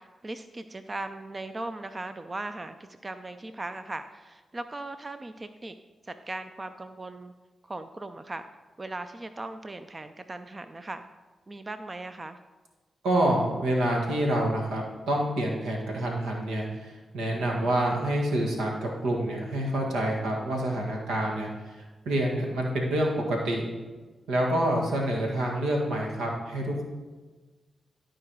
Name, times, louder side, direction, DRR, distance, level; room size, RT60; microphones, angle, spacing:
voice 1, 0.0-5.7 6.0-7.3 7.6-8.4 8.8-11.1 11.5-12.4 24.6-25.0, right 2 dB, 35° right, 9 dB, 0.5 m, -38 dB
voice 2, 13.0-23.6 24.3-26.8, right 1 dB, 90° right, 0 dB, 1.7 m, -27 dB
12.5 x 4.9 x 4.7 m, 1.3 s
supercardioid pair, 45°, 0 cm